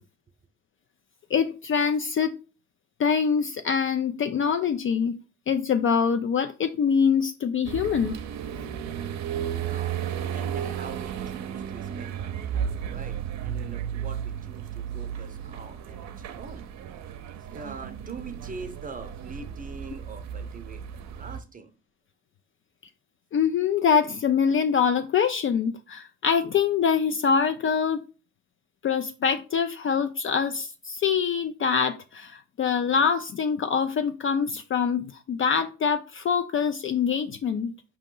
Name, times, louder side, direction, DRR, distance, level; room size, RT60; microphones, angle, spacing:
voice 1, 1.3-2.4 3.0-5.2 5.5-8.2 23.3-28.0 28.8-37.7, left 6 dB, 45° left, 9 dB, 0.4 m, -24 dB
sound 1, 7.6-21.4, right 9 dB, 65° right, 0.6 m, -34 dB
voice 2, 9.7-13.2 13.4-16.7 17.5-21.7, right 4 dB, 25° right, 7 dB, 0.7 m, -43 dB
4.8 x 2.9 x 3.7 m, 0.35 s
cardioid pair, 90°, 30 cm